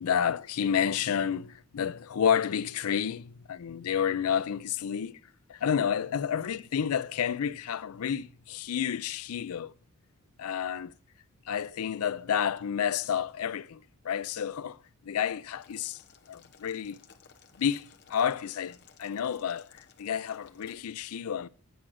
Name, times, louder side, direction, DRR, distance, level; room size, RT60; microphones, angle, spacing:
voice 1, 0.0-5.2 5.5-9.7 10.4-10.9 11.5-16.0 16.3-17.0 17.6-21.5, left 8 dB, 80° left, 0.4 m, -30 dB
Boiling, 15.6-20.7, left 7 dB, 50° left, 0.9 m, -58 dB
9.4 x 6.0 x 6.2 m
head